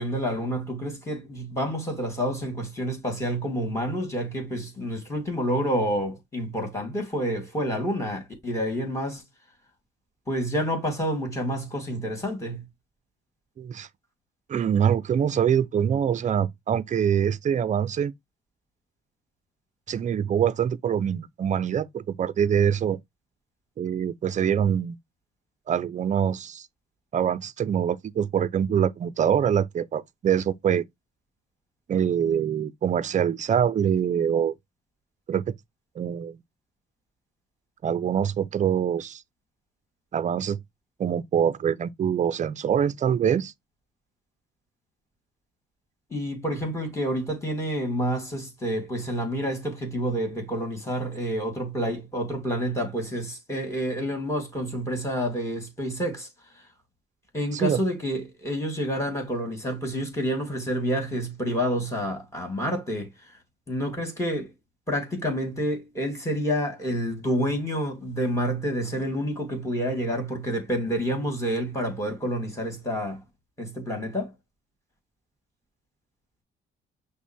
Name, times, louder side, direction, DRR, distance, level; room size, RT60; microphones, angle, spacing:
voice 1, 0.0-9.2 10.3-12.6 46.1-56.3 57.3-63.4 63.7-64.5 64.9-73.2 73.6-74.3, equal, 15° left, 2.3 m, -28 dB
voice 2, 13.6-13.9 14.5-18.1 19.9-23.0 23.8-25.0 25.7-26.7 27.1-30.8 31.9-34.5 35.3-35.5 36.0-36.4 37.8-39.2 40.1-40.6 41.0-43.5 57.5-57.8, right 8 dB, 40° right, 0.4 m, -24 dB
5.7 x 2.1 x 4.4 m
cardioid pair, 90°, 20 cm